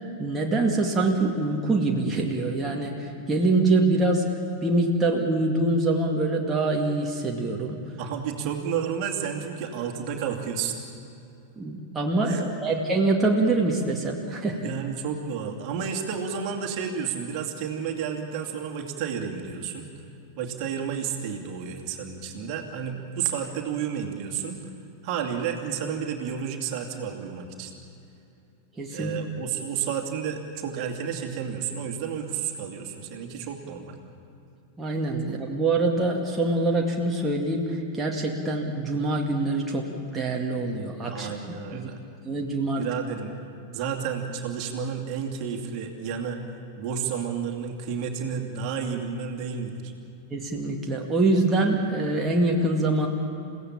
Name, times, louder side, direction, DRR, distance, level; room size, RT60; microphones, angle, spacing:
voice 1, 0.2-4.2 4.6-7.8 11.6-14.7 28.8-29.1 34.8-41.3 41.7-41.9 42.2-42.9 50.3-53.1, right 2 dB, 15° right, -1 dB, 2.2 m, -24 dB
voice 2, 8.0-10.8 12.2-12.8 14.6-19.9 20.4-24.6 25.0-27.7 28.9-34.0 41.1-42.0 42.8-43.3 43.7-46.4 46.8-49.9, right 7 dB, 45° right, 2 dB, 2.6 m, -31 dB
29.5 x 16.5 x 7.4 m, 2.8 s
figure-of-eight pair, 90°, 0 cm